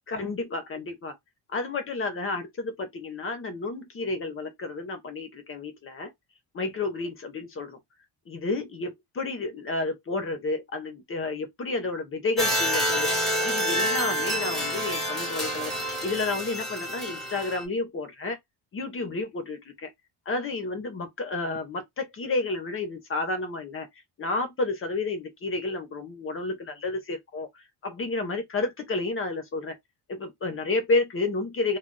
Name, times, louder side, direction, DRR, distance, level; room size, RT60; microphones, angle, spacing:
voice 1, 0.1-1.1 1.5-6.1 6.5-7.8 8.3-13.1 13.4-18.4 18.7-19.9 20.3-23.9 24.2-27.5 27.8-29.7 30.1-31.8, left 3 dB, 30° left, 0.7 m, -31 dB
sound 1, 12.4-17.6, equal, ahead, 0.9 m, -28 dB
2.2 x 2.1 x 3.8 m
cardioid pair, 155°, 41 cm